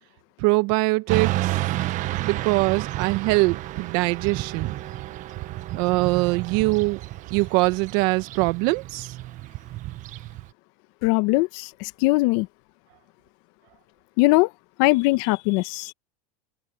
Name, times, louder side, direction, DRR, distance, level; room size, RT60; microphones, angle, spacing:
voice 1, 0.4-1.6 2.2-4.7 5.7-7.0 7.3-9.2, right 23 dB, 60° right, 1.5 m, -23 dB
Motorcycle / Traffic noise roadway noise, 1.1-10.5, right 16 dB, 45° right, 1.7 m, -31 dB
voice 2, 11.0-12.5 14.2-14.5 14.8-15.9, left 22 dB, 60° left, 1.5 m, -21 dB
supercardioid pair, 115°, 18 cm